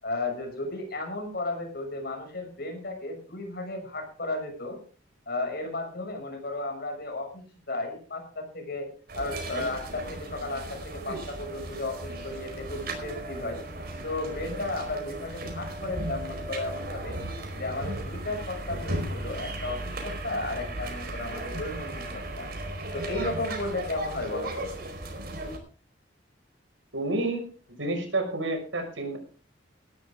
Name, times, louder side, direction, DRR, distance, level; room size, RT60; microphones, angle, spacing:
voice 1, 0.0-4.8 5.3-8.9 9.2-13.6 14.0-17.2 17.5-22.5 22.9-24.7, left 2 dB, 55° left, 4 dB, 6.5 m, -34 dB
sound 1, 9.1-25.6, right 1 dB, 55° right, 4.8 m, -36 dB
voice 2, 26.9-27.5 27.8-29.2, right 2 dB, 90° right, 5 dB, 5.7 m, -29 dB
18.5 x 12.5 x 3.7 m, 0.40 s
head